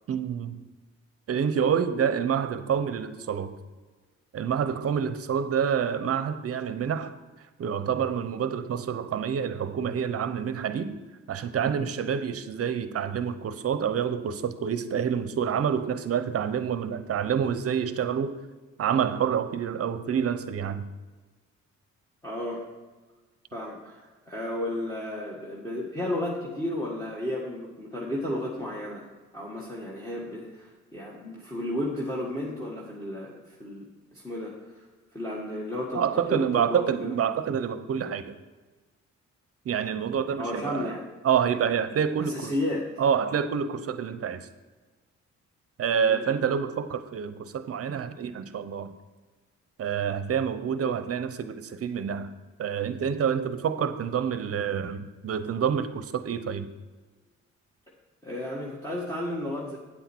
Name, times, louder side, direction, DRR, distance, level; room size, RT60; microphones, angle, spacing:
voice 1, 0.1-0.6 1.3-3.5 4.3-7.1 7.6-11.0 11.3-18.4 18.8-20.9 35.9-38.4 39.6-40.9 41.2-42.5 43.0-44.5 45.8-48.9 49.8-52.3 52.6-56.7, right 7 dB, 50° right, 0.8 m, -27 dB
voice 2, 22.2-22.6 23.5-29.1 29.3-33.9 34.1-34.8 35.1-36.0 36.3-37.1 40.4-41.1 42.2-42.9 46.0-46.3 50.8-51.0 58.2-59.8, left 1 dB, 10° left, 1.9 m, -33 dB
8.9 x 8.0 x 4.6 m
cardioid pair, 90°, 30 cm